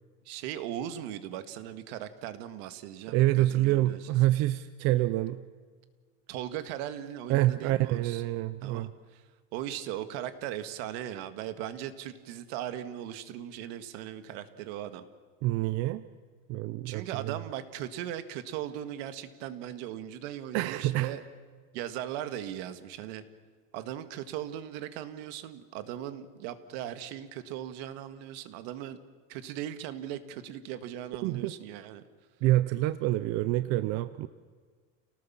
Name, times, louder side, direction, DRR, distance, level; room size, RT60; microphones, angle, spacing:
voice 1, 0.3-4.0 6.3-8.2 8.6-9.2 9.5-15.0 16.9-21.2 21.7-23.2 23.7-29.0 29.3-32.0, right 11 dB, 70° right, 10 dB, 1.9 m, -38 dB
voice 2, 3.1-5.4 7.3-8.9 15.4-16.0 16.5-17.4 20.5-21.1 31.2-31.5 32.4-34.3, right 16 dB, 45° right, 13 dB, 0.6 m, -27 dB
29.0 x 19.0 x 7.4 m, 1.6 s
cardioid pair, 175°, 34 cm